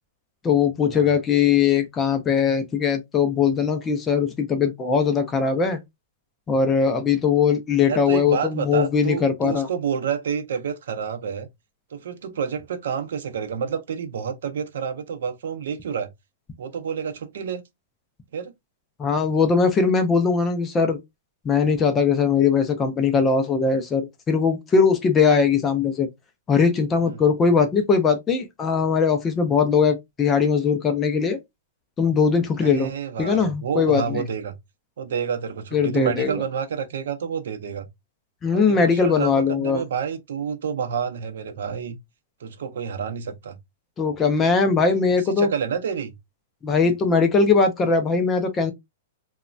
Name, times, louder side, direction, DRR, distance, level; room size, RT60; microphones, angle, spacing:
voice 1, 0.4-5.8 6.5-9.7 19.0-21.0 21.4-26.1 26.5-31.4 32.0-32.9 33.2-34.2 35.7-36.4 38.4-39.8 44.0-45.5 46.6-48.7, left 5 dB, 10° left, 0.3 m, -20 dB
voice 2, 7.9-11.5 11.9-16.1 16.6-17.6 18.3-18.5 27.0-27.2 32.6-34.6 35.0-37.9 38.5-42.0 42.4-43.6 45.3-46.2, right 7 dB, 65° right, 0.5 m, -29 dB
3.0 x 2.1 x 2.4 m
supercardioid pair, 180°, 0 cm